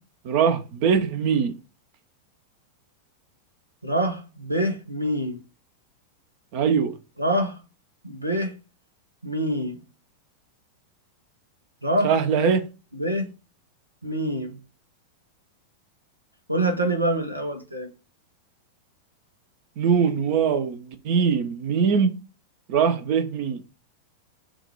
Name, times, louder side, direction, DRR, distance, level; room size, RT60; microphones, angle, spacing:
voice 1, 0.2-1.5 6.5-6.9 12.0-12.6 19.8-22.1 22.7-23.6, right 6 dB, 45° right, 0.9 m, -22 dB
voice 2, 3.8-5.4 7.2-7.6 8.0-8.5 9.2-9.8 11.8-12.1 12.9-13.3 14.0-14.5 16.5-17.9, right 1 dB, 85° right, 1.2 m, -25 dB
7.5 x 2.7 x 4.8 m
figure-of-eight pair, 90°, 0 cm